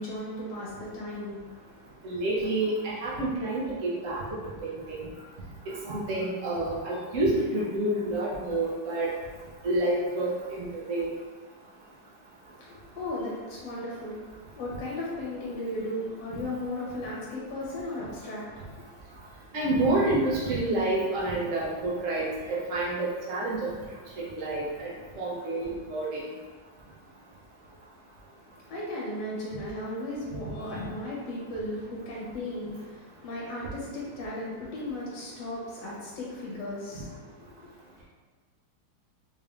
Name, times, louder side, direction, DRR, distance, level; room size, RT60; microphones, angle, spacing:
voice 1, 0.0-1.9 12.5-18.8 28.6-37.6, left 1 dB, 60° left, -5 dB, 1.5 m, -36 dB
voice 2, 2.0-4.2 4.6-5.1 5.7-9.1 9.6-11.1 19.5-23.7 24.3-24.9 25.2-26.2, right 2 dB, 80° right, -7 dB, 0.7 m, -28 dB
3.9 x 3.5 x 2.4 m, 1.4 s
omnidirectional pair, 2.4 m